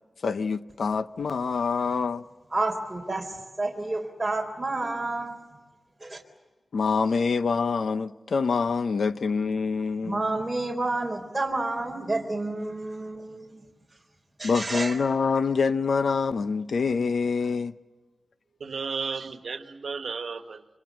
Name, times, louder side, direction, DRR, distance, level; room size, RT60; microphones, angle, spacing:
voice 1, 0.2-2.3 6.7-10.4 14.4-17.7, left 5 dB, 80° left, 0.9 m, -26 dB
voice 2, 2.5-5.4 6.0-6.2 10.0-13.6 14.4-14.9, right 2 dB, 15° right, 3.8 m, -30 dB
voice 3, 18.6-20.6, right 5 dB, 80° right, 1.5 m, -33 dB
27.0 x 26.5 x 7.5 m
wide cardioid pair, 90°, 0 cm